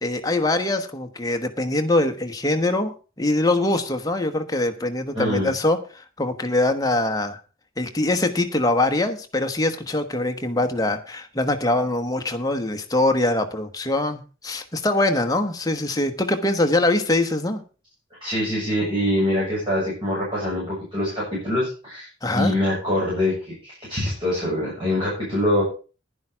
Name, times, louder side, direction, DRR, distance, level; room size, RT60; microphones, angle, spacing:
voice 1, 0.0-7.4 7.8-17.6 22.2-22.5, left 2 dB, 15° left, 6 dB, 1.1 m, -23 dB
voice 2, 5.1-5.5 18.2-22.1 22.3-25.6, left 1 dB, 25° right, -6 dB, 6.9 m, -24 dB
11.0 x 10.5 x 4.6 m, 0.35 s
head